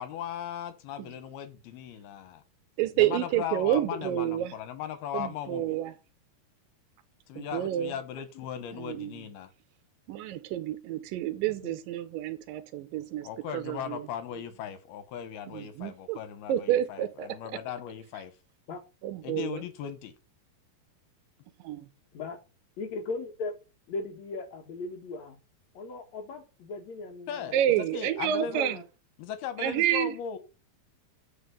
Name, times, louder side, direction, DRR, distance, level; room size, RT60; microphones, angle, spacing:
voice 1, 0.0-2.4 2.9-5.8 7.3-9.5 13.2-18.3 19.2-20.1 27.3-27.6 27.9-28.7 29.2-30.4, left 9 dB, 80° left, 3.1 m, -38 dB
voice 2, 2.8-4.5 5.1-5.9 7.4-7.9 8.7-9.2 10.1-13.3 13.5-14.0 15.5-16.2 16.5-17.4 19.0-19.6 21.6-21.8 27.5-28.8 29.6-30.1, right 12 dB, 80° right, 2.1 m, -29 dB
voice 3, 8.1-8.5 11.6-11.7 18.7-18.8 22.1-22.4 22.8-23.5 23.9-25.4 25.7-27.6 28.5-28.8, left 3 dB, 55° left, 2.6 m, -38 dB
9.0 x 5.2 x 5.2 m
omnidirectional pair, 4.5 m